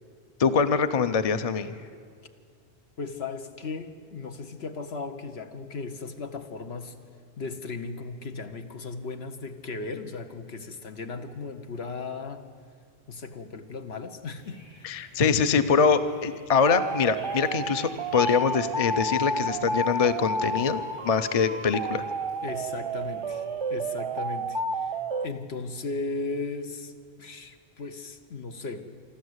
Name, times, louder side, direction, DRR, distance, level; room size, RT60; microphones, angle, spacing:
voice 1, 0.4-1.7 14.8-22.0, left 6 dB, 40° left, 11 dB, 0.8 m, -24 dB
voice 2, 3.0-7.0 7.4-12.5 13.1-15.4 22.4-23.4 23.7-25.0 25.2-26.9 27.2-28.9, left 3 dB, 80° left, 7 dB, 1.4 m, -36 dB
sound 1, 14.4-24.3, equal, 55° left, 7.1 m, -52 dB
sound 2, 16.6-25.3, right 2 dB, 35° right, 0.5 m, -31 dB
25.0 x 13.0 x 8.1 m, 2.1 s
omnidirectional pair, 1.1 m